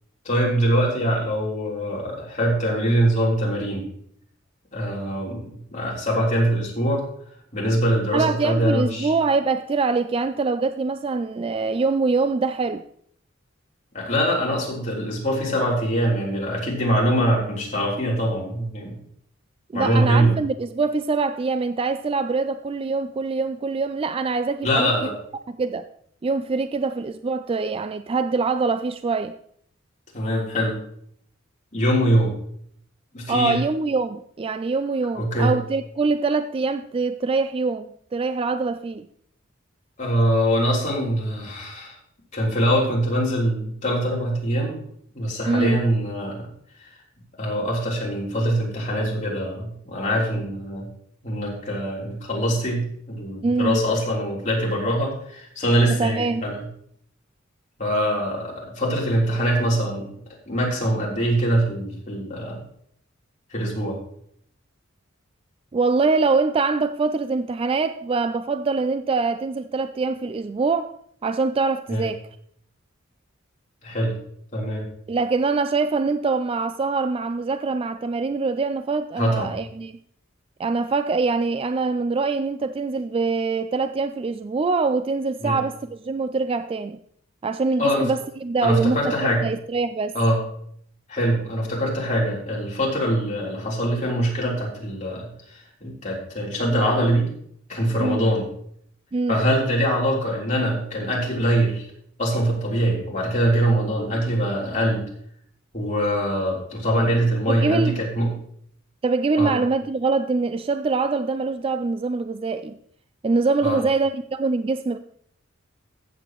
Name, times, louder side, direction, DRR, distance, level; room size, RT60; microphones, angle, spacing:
voice 1, 0.3-3.9 4.7-7.0 7.5-9.1 13.9-19.0 19.7-20.3 24.6-25.1 30.1-30.8 31.7-32.3 33.1-33.6 35.1-35.5 40.0-41.9 42.3-44.8 45.1-46.4 47.4-50.9 51.2-56.6 57.8-60.1 60.5-62.6 63.5-64.0 71.9-72.0 73.8-74.1 74.5-74.8 79.2-79.5 85.4-85.6 87.8-88.1 88.6-89.5 90.1-90.4 91.1-97.3 97.7-98.5 99.3-101.8 102.2-105.0 105.7-108.3 109.4-109.6 113.6-113.8, equal, 40° left, 3.5 m, -23 dB
voice 2, 8.1-12.8 19.7-25.1 25.6-25.8 26.2-29.4 33.3-39.1 45.5-45.8 53.4-53.8 55.9-56.5 65.7-70.9 71.2-72.2 75.1-80.0 80.6-87.0 87.4-90.1 98.0-98.2 99.1-99.3 107.5-108.0 109.0-112.8 113.2-115.0, right 4 dB, 30° right, 0.3 m, -24 dB
14.5 x 8.1 x 3.0 m
head